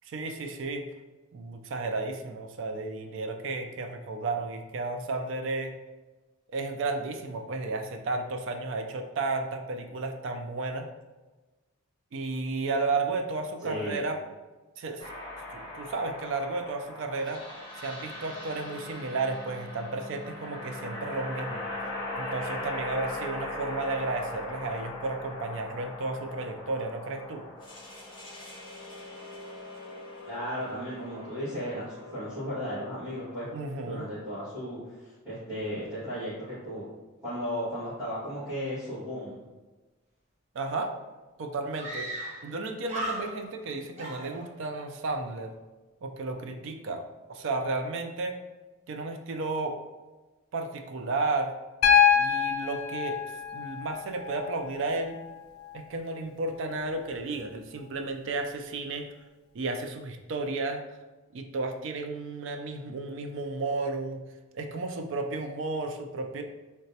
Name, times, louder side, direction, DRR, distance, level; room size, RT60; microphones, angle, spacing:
voice 1, 0.1-0.9 1.3-5.7 6.5-10.9 12.1-14.2 14.8-15.0 15.5-17.4 17.8-21.6 22.2-27.4 33.5-34.1 40.6-40.9 41.4-42.1 42.4-45.6 46.0-47.0 47.3-48.4 48.9-49.8 50.5-51.5 52.2-53.2 53.5-55.2 55.7-59.1 59.5-60.8 61.3-64.2 64.5-66.4, right 3 dB, 60° right, 5 dB, 0.3 m, -33 dB
voice 2, 13.6-14.0 30.2-33.5 33.8-36.9 37.2-39.4, equal, 10° right, -15 dB, 1.4 m, -35 dB
sound 1, 15.0-33.7, left 2 dB, 20° left, 0.9 m, -40 dB
Screaming, 41.0-41.1 41.8-42.6 42.8-43.6 44.0-44.9, right 1 dB, 30° right, 0.7 m, -37 dB
Piano, 51.8-55.8 57.4-57.5, left 8 dB, 85° left, 0.3 m, -26 dB
3.9 x 2.2 x 2.7 m, 1.2 s
head